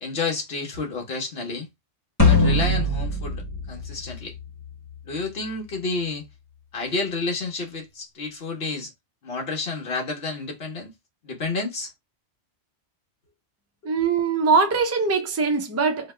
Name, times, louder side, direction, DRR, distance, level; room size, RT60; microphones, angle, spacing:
voice 1, 0.0-1.7 2.2-4.3 5.0-6.2 6.7-8.9 9.2-10.9 11.2-11.9, left 3 dB, 55° left, 1.3 m, -30 dB
sound 1, 2.2-4.7, left 2 dB, 15° left, 1.4 m, -21 dB
voice 2, 13.8-16.1, right 4 dB, 25° right, 0.3 m, -22 dB
3.3 x 2.2 x 3.2 m
omnidirectional pair, 1.2 m